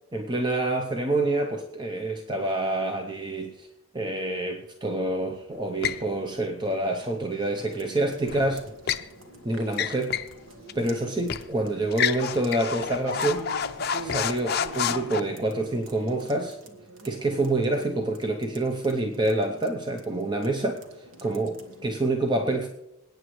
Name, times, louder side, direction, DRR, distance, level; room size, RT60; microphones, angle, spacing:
voice 1, 0.1-3.7 3.9-8.6 9.4-10.2 10.7-13.5 14.0-16.6 17.0-22.7, right 2 dB, 20° right, 3 dB, 0.7 m, -27 dB
sound 1, 5.8-6.1 8.3-9.1 9.7-10.3 10.7-10.8 11.3-11.5 11.9-15.2, left 8 dB, 45° left, 0.5 m, -29 dB
sound 2, 7.5-21.9, right 2 dB, 75° right, 1.5 m, -46 dB
27.0 x 9.1 x 3.2 m, 0.90 s
head